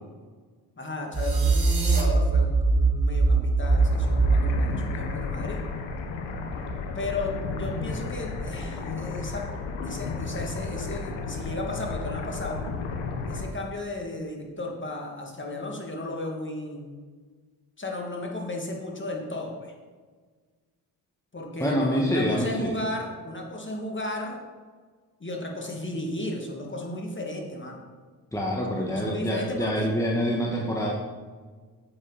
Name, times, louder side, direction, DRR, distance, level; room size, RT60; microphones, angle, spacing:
voice 1, 0.8-5.6 6.9-9.4 9.8-12.6 13.3-16.9 17.8-19.7 21.3-24.4 25.2-27.8 28.7-29.9, left 2 dB, 25° left, 0 dB, 2.5 m, -34 dB
sound 1, 1.1-4.7, right 3 dB, 20° right, 0.9 m, -22 dB
sound 2, 1.1-2.0, right 4 dB, 50° right, 2.6 m, -35 dB
sound 3, 3.6-13.5, left 4 dB, 80° left, 1.3 m, -33 dB
voice 2, 21.6-22.8 28.3-30.9, equal, 5° left, -2 dB, 1.6 m, -26 dB
8.7 x 7.7 x 4.2 m, 1.5 s
hypercardioid pair, 50°, 45 cm